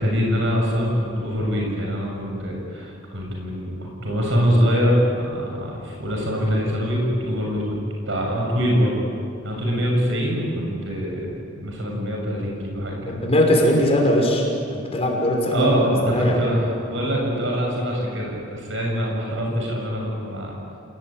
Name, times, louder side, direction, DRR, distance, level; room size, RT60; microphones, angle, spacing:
voice 1, 0.0-7.8 8.1-9.0 9.4-13.2 15.5-20.6, equal, 75° right, -1 dB, 7.2 m, -24 dB
voice 2, 13.0-16.4, left 1 dB, 35° left, 0 dB, 6.0 m, -20 dB
29.5 x 20.0 x 9.1 m, 2.4 s
head